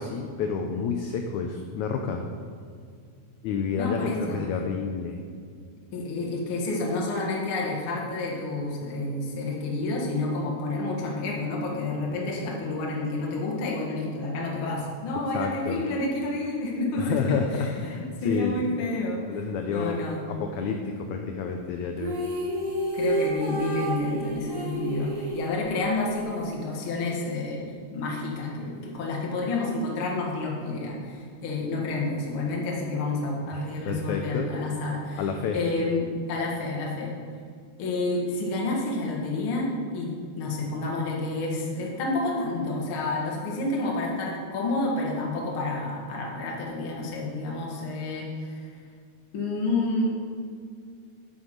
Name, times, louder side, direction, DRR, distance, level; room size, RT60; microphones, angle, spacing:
voice 1, 0.0-2.2 3.4-5.2 15.3-15.8 17.0-18.6 19.3-20.0 20.3-22.1 33.5-34.5 35.2-35.6, left 6 dB, 90° left, 4 dB, 1.6 m, -29 dB
voice 2, 3.8-4.4 5.9-19.2 19.6-20.2 22.9-27.6 27.9-35.3 35.5-36.0 36.3-37.1 37.8-48.7 49.3-50.1, left 2 dB, 50° left, -2 dB, 1.9 m, -29 dB
sound 1, 22.0-26.2, right 1 dB, 65° right, 3.3 m, -30 dB
8.0 x 7.7 x 5.1 m, 2.2 s
omnidirectional pair, 4.0 m